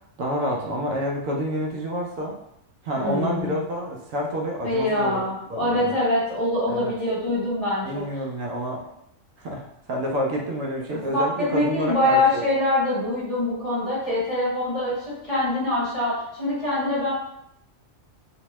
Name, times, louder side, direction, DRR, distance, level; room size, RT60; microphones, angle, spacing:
voice 1, 0.2-2.4 2.8-5.2 5.5-5.9 6.7-6.9 7.8-8.8 9.4-12.4, equal, 75° right, -1 dB, 1.0 m, -28 dB
voice 2, 3.0-3.6 4.6-8.0 10.9-11.2 11.5-14.9 15.2-17.1, left 1 dB, 30° left, -8 dB, 1.0 m, -24 dB
2.6 x 2.2 x 2.9 m, 0.76 s
omnidirectional pair, 1.4 m